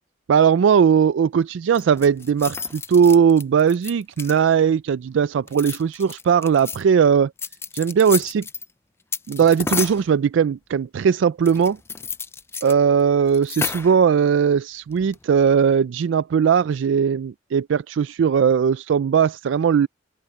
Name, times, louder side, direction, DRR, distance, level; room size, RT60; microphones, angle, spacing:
voice 1, 0.3-7.3 7.7-8.5 9.3-11.8 12.6-19.9, right 7 dB, 70° right, 0.3 m, -18 dB
sound 1, 1.7-4.6 5.4-6.8 7.4-8.7 9.1-10.1 11.5-12.7 13.0-13.1 13.3-14.0 14.9-15.2, left 5 dB, 15° left, 0.3 m, -31 dB
open air
head